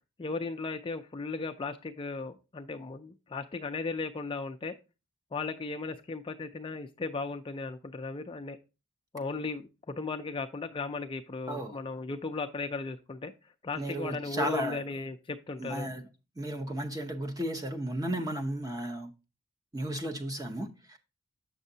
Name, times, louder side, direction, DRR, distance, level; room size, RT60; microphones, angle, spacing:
voice 1, 0.2-4.7 5.3-8.6 9.1-15.9, left 3 dB, 25° left, 0.4 m, -36 dB
voice 2, 13.8-14.8 15.6-16.0 16.4-19.1 19.7-21.0, right 1 dB, 15° right, 0.7 m, -34 dB
7.9 x 6.4 x 2.7 m
head